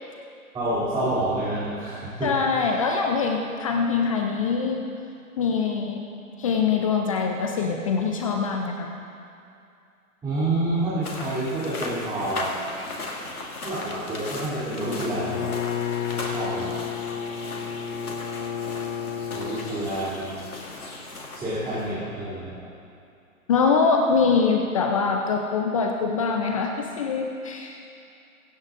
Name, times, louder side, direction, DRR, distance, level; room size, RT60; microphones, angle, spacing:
voice 1, 0.5-2.7 10.2-12.6 13.6-15.5 16.1-16.8 19.3-20.4 21.3-22.7, right 1 dB, 10° right, -13 dB, 3.1 m, -28 dB
voice 2, 2.2-4.9 5.4-6.0 6.4-8.9 23.5-27.9, left 5 dB, 25° left, 3 dB, 0.6 m, -23 dB
sound 1, 11.0-21.9, left 2 dB, 80° left, 2.4 m, -37 dB
Bowed string instrument, 15.0-19.8, left 8 dB, 60° left, 1.1 m, -31 dB
24.0 x 9.5 x 2.6 m, 2.6 s
hypercardioid pair, 135°, 43 cm